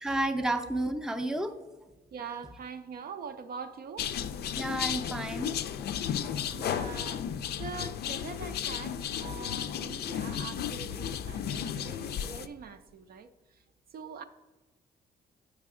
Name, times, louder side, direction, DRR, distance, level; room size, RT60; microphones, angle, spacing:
voice 1, 0.0-1.6 4.6-6.2, right 1 dB, 5° right, 7 dB, 0.5 m, -32 dB
voice 2, 2.1-4.1 6.5-13.6 13.9-14.2, right 6 dB, 55° right, 9 dB, 0.5 m, -43 dB
sound 1, 4.0-12.5, left 9 dB, 65° left, 0.4 m, -34 dB
7.4 x 5.9 x 3.6 m, 1.2 s
cardioid pair, 105°, 18 cm